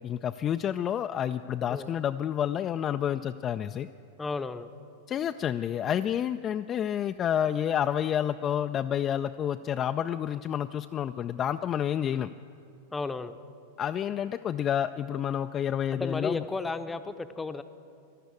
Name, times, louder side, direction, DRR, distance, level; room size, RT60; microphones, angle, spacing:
voice 1, 0.0-3.9 5.1-12.3 13.8-16.4, left 9 dB, 30° left, 9 dB, 0.4 m, -29 dB
voice 2, 4.2-4.7 12.9-13.4 15.9-17.6, left 3 dB, 10° left, 11 dB, 0.8 m, -33 dB
12.5 x 12.5 x 8.4 m, 2.5 s
figure-of-eight pair, 95°, 0 cm